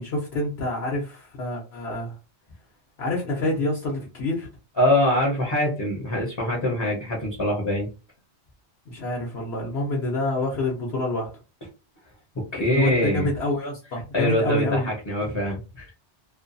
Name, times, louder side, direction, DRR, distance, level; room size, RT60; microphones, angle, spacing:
voice 1, 0.0-2.1 3.0-4.5 8.9-11.3 12.6-14.9, left 1 dB, 65° left, -2 dB, 1.0 m, -27 dB
voice 2, 4.8-7.9 12.5-13.3 14.1-15.9, left 1 dB, 25° left, -2 dB, 0.7 m, -24 dB
2.5 x 2.3 x 2.5 m, 0.31 s
omnidirectional pair, 1.2 m